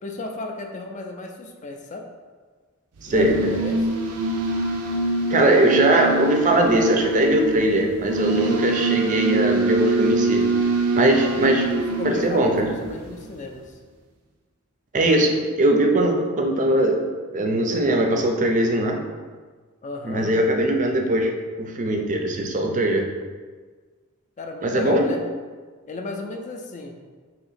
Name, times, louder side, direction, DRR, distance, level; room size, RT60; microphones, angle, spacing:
voice 1, 0.0-2.1 3.1-3.9 11.2-13.8 15.3-15.5 19.8-20.3 24.4-25.2 25.9-27.0, left 2 dB, 35° left, 3 dB, 0.4 m, -34 dB
voice 2, 3.0-3.5 5.3-10.4 11.0-11.6 12.0-12.7 14.9-17.0 17.3-19.0 20.0-21.3 21.6-23.0 24.6-25.0, right 1 dB, 35° right, 2 dB, 0.5 m, -20 dB
sound 1, 3.0-13.4, right 2 dB, 85° right, 0.5 m, -24 dB
2.9 x 2.9 x 4.1 m, 1.5 s
head